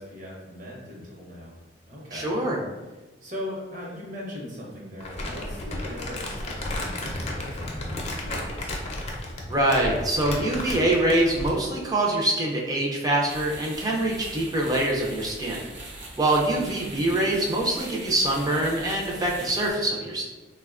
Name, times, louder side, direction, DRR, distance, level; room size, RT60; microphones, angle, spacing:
voice 1, 0.0-1.6 1.9-2.4 3.2-8.7, left 1 dB, 45° right, -3 dB, 0.8 m, -39 dB
voice 2, 2.1-2.6 9.5-15.6 16.2-20.2, right 1 dB, 20° right, -2 dB, 0.4 m, -24 dB
Crumpling crinkling, 5.0-11.6, left 1 dB, 35° left, 0.5 m, -33 dB
sound 1, 13.3-19.7, right 2 dB, 85° right, 0.6 m, -41 dB
3.3 x 2.1 x 2.4 m, 1.2 s
head